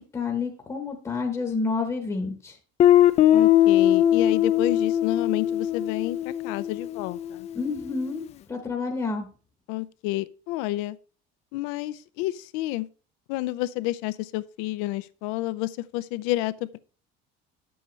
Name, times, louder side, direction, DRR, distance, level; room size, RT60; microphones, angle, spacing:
voice 1, 0.1-2.6 7.5-8.2 8.5-9.3, left 4 dB, 15° left, 1.0 m, -29 dB
Guitar, 2.8-7.5, left 11 dB, 35° left, 0.4 m, -20 dB
voice 2, 3.3-7.5 9.7-11.0 11.5-12.9 13.3-16.8, left 16 dB, 85° left, 0.5 m, -30 dB
9.6 x 7.8 x 3.2 m
cardioid pair, 150°, 20 cm